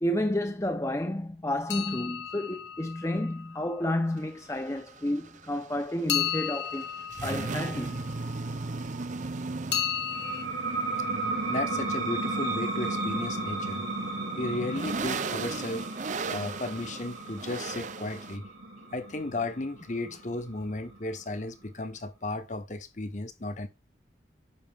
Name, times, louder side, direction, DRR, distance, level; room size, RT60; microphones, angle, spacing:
voice 1, 0.0-6.9 7.2-8.0, left 1 dB, 15° left, 0.7 m, -30 dB
sound 1, 1.7-3.8 6.1-8.5 9.7-10.4, left 9 dB, 75° left, 1.5 m, -34 dB
sound 2, 4.2-18.4, right 4 dB, 45° right, 0.5 m, -38 dB
sound 3, 10.1-21.4, right 2 dB, 85° right, 3.5 m, -34 dB
voice 2, 11.5-13.8 14.4-15.9 16.3-18.4 18.9-23.7, left 2 dB, 45° left, 1.1 m, -34 dB
9.6 x 6.6 x 3.5 m
head